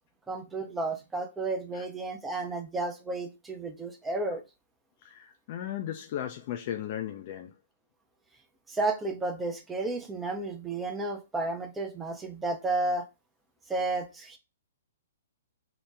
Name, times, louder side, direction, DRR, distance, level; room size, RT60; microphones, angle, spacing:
voice 1, 0.3-4.4 8.7-13.1 13.7-14.4, right 2 dB, 10° right, 0.5 m, -32 dB
voice 2, 5.0-7.5, left 11 dB, 45° left, 0.4 m, -36 dB
2.9 x 2.1 x 3.3 m
figure-of-eight pair, 120°, 0 cm